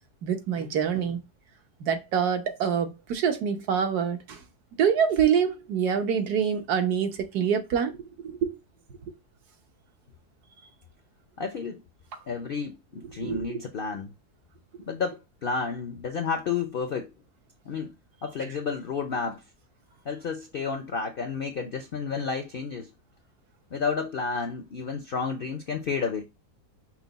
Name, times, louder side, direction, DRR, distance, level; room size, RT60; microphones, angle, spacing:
voice 1, 0.2-1.2 1.8-4.4 4.8-7.9 8.2-8.5 13.2-13.6, right 7 dB, 80° right, 1.4 m, -25 dB
voice 2, 11.4-11.8 12.3-14.1 14.9-17.1 17.7-17.9 18.2-19.4 20.0-22.9 23.7-26.2, left 5 dB, 70° left, 0.5 m, -31 dB
5.9 x 2.2 x 3.9 m
omnidirectional pair, 1.7 m